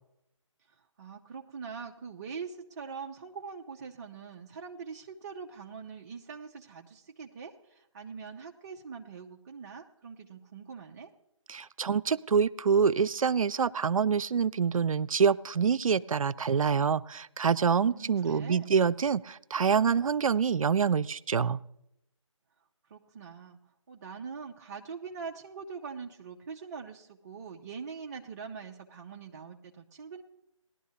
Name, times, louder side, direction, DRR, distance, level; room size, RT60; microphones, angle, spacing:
voice 1, 0.7-11.1 17.9-18.8 22.9-23.6 23.9-30.2, right 5 dB, 30° right, 1 dB, 0.6 m, -43 dB
voice 2, 11.5-21.6, right 6 dB, 90° right, 17 dB, 0.4 m, -26 dB
18.5 x 11.5 x 2.8 m, 0.82 s
figure-of-eight pair, 155°, 17 cm